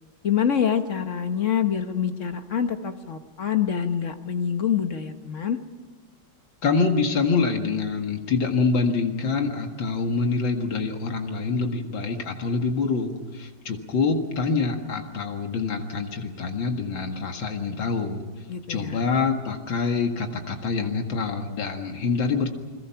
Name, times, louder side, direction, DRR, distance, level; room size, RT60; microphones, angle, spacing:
voice 1, 0.2-5.6 18.5-19.1, left 8 dB, 45° left, 7 dB, 1.4 m, -26 dB
voice 2, 6.6-18.2 18.7-22.5, left 4 dB, 75° left, 4 dB, 2.6 m, -25 dB
29.5 x 21.5 x 5.8 m, 1.3 s
omnidirectional pair, 2.1 m